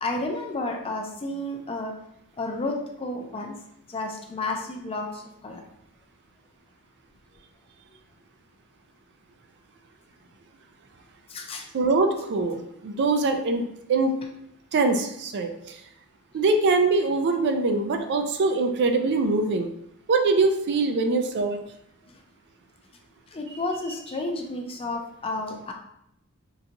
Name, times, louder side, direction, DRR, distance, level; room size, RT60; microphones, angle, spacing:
voice 1, 0.0-1.9 2.4-3.6 3.9-5.6 11.3-11.7 22.1-22.2 23.3-25.7, left 2 dB, 25° left, 2 dB, 0.4 m, -31 dB
voice 2, 11.7-14.1 14.7-15.5 16.3-19.7 20.1-21.6, right 3 dB, 50° right, 5 dB, 0.4 m, -23 dB
3.8 x 2.3 x 2.8 m, 0.77 s
head